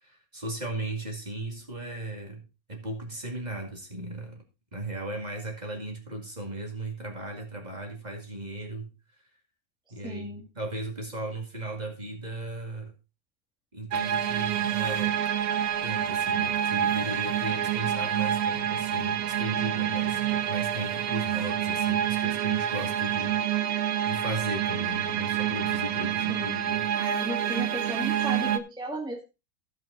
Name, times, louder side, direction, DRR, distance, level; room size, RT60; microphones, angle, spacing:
voice 1, 0.0-4.4 4.7-8.9 9.9-12.9 13.7-15.2 15.8-26.9, right 2 dB, 30° right, 2.4 m, -36 dB
voice 2, 10.0-10.5 26.3-26.7 27.0-29.2, equal, 5° right, 1.7 m, -35 dB
sound 1, 13.9-28.6, right 10 dB, 85° right, 1.2 m, -27 dB
15.5 x 5.6 x 3.9 m
omnidirectional pair, 1.5 m